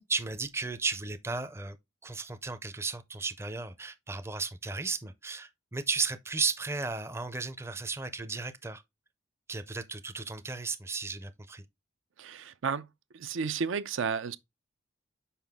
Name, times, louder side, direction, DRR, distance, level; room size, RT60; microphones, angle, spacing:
voice 1, 0.0-1.8 2.0-8.8 9.5-11.6, right 4 dB, 15° right, 0.4 m, -34 dB
voice 2, 12.2-12.9 13.1-14.4, right 6 dB, 80° right, 0.5 m, -32 dB
5.7 x 5.0 x 3.5 m
head